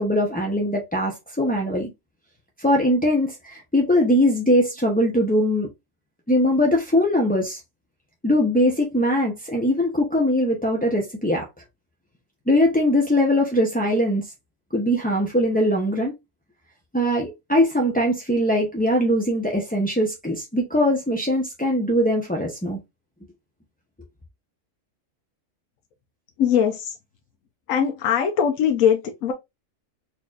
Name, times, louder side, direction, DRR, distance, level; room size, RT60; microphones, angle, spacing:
voice 1, 0.0-1.9 2.6-5.7 6.3-7.6 8.2-11.5 12.5-14.2 14.7-16.1 16.9-22.8, equal, 15° left, 0.4 m, -21 dB
voice 2, 26.4-27.0 27.7-29.3, left 8 dB, 85° left, 1.1 m, -21 dB
4.2 x 3.0 x 2.4 m
omnidirectional pair, 1.4 m